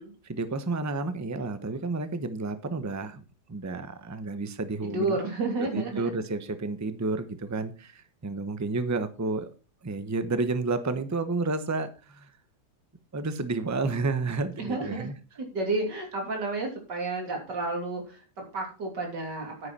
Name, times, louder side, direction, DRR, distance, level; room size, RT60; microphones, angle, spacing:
voice 1, 0.2-3.2 3.5-5.2 5.6-9.5 9.8-12.3 13.1-15.1, right 3 dB, 15° right, 10 dB, 0.6 m, -31 dB
voice 2, 4.8-6.2 14.6-15.1 15.4-19.7, right 3 dB, 70° right, 1 dB, 3.6 m, -31 dB
10.0 x 9.9 x 4.3 m, 0.33 s
omnidirectional pair, 1.9 m